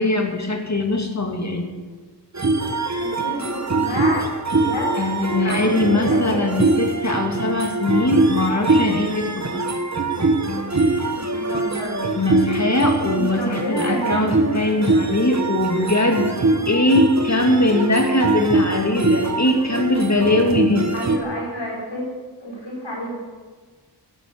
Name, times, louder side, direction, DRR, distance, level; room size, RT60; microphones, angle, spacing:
voice 1, 0.0-1.7 5.0-9.6 12.2-16.4 16.7-20.9, left 2 dB, 40° left, 3 dB, 2.3 m, -21 dB
sound 1, 2.3-21.2, right 3 dB, 40° right, 1.3 m, -22 dB
voice 2, 3.0-5.0 5.4-6.4 11.3-12.0 13.1-14.3 20.9-22.1 22.4-23.1, equal, 90° left, -3 dB, 5.3 m, -29 dB
12.5 x 11.0 x 6.9 m, 1.4 s
wide cardioid pair, 55°, 43 cm